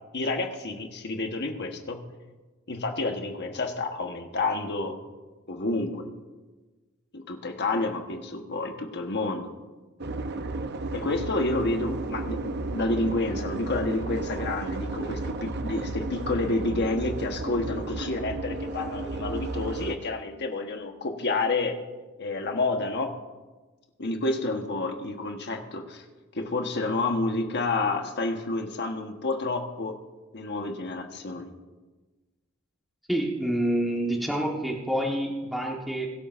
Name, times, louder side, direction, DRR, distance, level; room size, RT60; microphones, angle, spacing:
voice 1, 0.1-2.1 2.7-5.0 5.5-6.1 7.1-9.5 10.9-21.7 22.2-23.1 24.0-26.1 26.3-30.0 30.3-31.5, left 2 dB, 55° left, 4 dB, 1.3 m, -29 dB
sound 1, 10.0-20.0, right 2 dB, 50° right, 0.7 m, -33 dB
voice 2, 33.1-36.1, right 1 dB, ahead, -1 dB, 1.4 m, -27 dB
22.5 x 11.5 x 2.6 m, 1.2 s
head